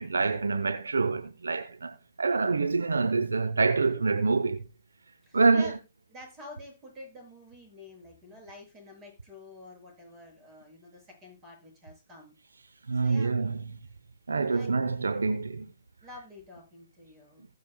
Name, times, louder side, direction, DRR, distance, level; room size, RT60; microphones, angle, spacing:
voice 1, 0.0-4.6 5.3-5.7 12.9-13.6 14.3-15.7, right 4 dB, 75° right, 0.9 m, -26 dB
voice 2, 5.2-5.7 6.1-12.3 13.0-13.3 14.4-14.8 16.0-17.5, left 2 dB, 25° right, 7.1 m, -48 dB
19.5 x 7.0 x 2.3 m
figure-of-eight pair, 135°, 0 cm